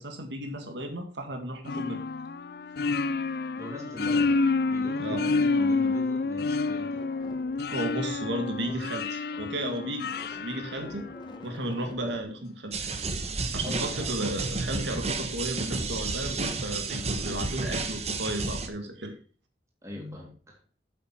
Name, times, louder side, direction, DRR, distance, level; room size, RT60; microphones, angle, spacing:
voice 1, 0.0-2.0 5.0-5.2 7.7-11.0 11.4-12.9 13.5-19.1, right 1 dB, 80° right, 4 dB, 2.0 m, -34 dB
sound 1, 1.7-11.5, left 3 dB, 55° left, 0.4 m, -29 dB
voice 2, 3.6-7.1 13.6-14.2 19.8-20.6, left 1 dB, 15° right, -1 dB, 3.1 m, -40 dB
sound 2, 7.0-9.0 9.3-12.2, left 1 dB, 25° left, 1.3 m, -48 dB
sound 3, 12.7-18.7, right 3 dB, 35° right, 1.2 m, -31 dB
9.2 x 7.6 x 4.4 m, 0.40 s
head